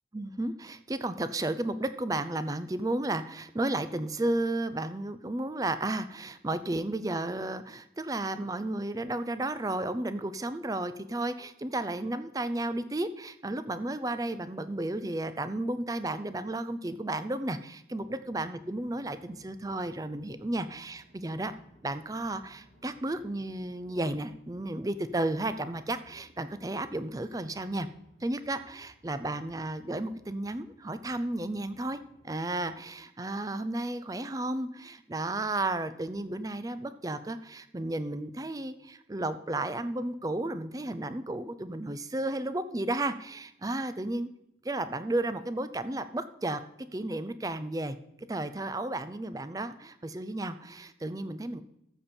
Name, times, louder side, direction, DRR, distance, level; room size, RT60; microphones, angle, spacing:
voice 1, 0.1-21.5 21.8-27.9 28.2-32.0 32.2-44.3 44.6-46.6 46.9-48.0 48.3-51.6, right 2 dB, 20° right, 12 dB, 0.5 m, -33 dB
sound 1, 17.9-32.7, right 1 dB, 85° right, 4.1 m, -61 dB
14.0 x 7.1 x 4.4 m, 0.79 s
head